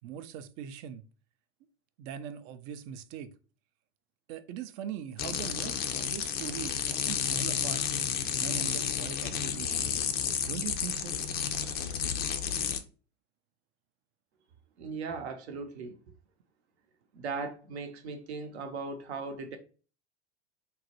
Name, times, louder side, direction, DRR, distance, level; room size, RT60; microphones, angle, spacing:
voice 1, 0.0-1.1 2.0-3.3 4.3-7.8 8.1-10.0 10.4-11.2, right 9 dB, 45° right, 0.4 m, -41 dB
sound 1, 5.2-12.8, left 8 dB, 30° left, 0.4 m, -31 dB
voice 2, 14.8-16.0 17.1-19.6, right 4 dB, 70° right, 0.8 m, -38 dB
3.8 x 2.1 x 2.8 m
figure-of-eight pair, 85°, 34 cm